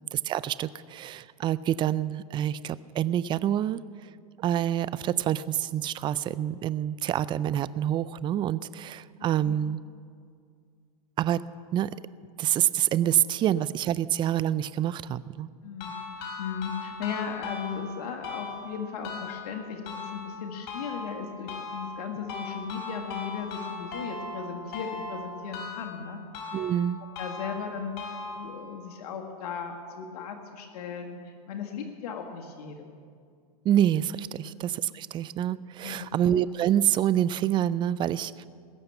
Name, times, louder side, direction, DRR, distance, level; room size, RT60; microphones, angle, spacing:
voice 1, 0.1-3.8 4.4-9.8 11.2-11.4 11.7-11.9 12.4-15.5 26.5-27.0 33.6-38.4, right 11 dB, 25° right, 18 dB, 0.4 m, -27 dB
voice 2, 9.2-9.5 15.6-26.2 27.2-32.9 34.4-34.5 35.8-36.2, left 6 dB, 75° left, 3 dB, 1.7 m, -37 dB
sound 1, 15.8-28.8, left 4 dB, 55° left, 4.6 m, -39 dB
19.5 x 7.0 x 8.9 m, 2.2 s
supercardioid pair, 125°, 20 cm